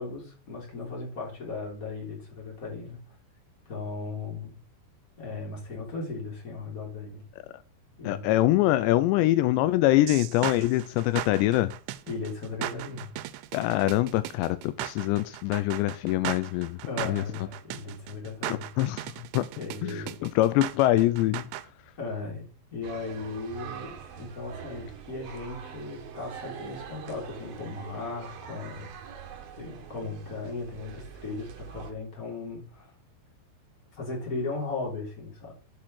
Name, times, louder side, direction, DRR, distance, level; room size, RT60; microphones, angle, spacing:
voice 1, 0.0-3.0 3.6-4.6 5.2-7.2 8.0-8.4 12.1-13.1 16.9-18.7 19.5-20.3 22.0-22.4 22.7-28.9 29.5-32.9 33.9-35.5, left 3 dB, 20° left, 3.4 m, -37 dB
voice 2, 8.1-11.7 13.5-16.8 17.0-17.2 18.5-19.0 19.3-19.5 19.8-21.4, left 16 dB, 90° left, 2.5 m, -24 dB
sound 1, 10.1-21.7, right 15 dB, 85° right, 3.1 m, -37 dB
sound 2, 22.8-31.9, right 8 dB, 60° right, 3.0 m, -43 dB
8.7 x 6.4 x 6.3 m
omnidirectional pair, 5.6 m